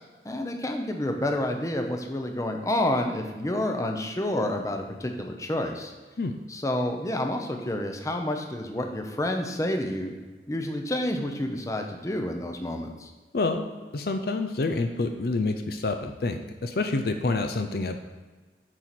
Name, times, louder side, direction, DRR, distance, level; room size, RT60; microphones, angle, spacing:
voice 1, 0.2-5.9 6.5-10.2 10.5-13.1, left 1 dB, 20° left, 4 dB, 0.7 m, -29 dB
voice 2, 13.3-13.7 13.9-18.0, left 3 dB, 60° left, 7 dB, 0.5 m, -27 dB
9.0 x 4.6 x 4.3 m, 1.3 s
head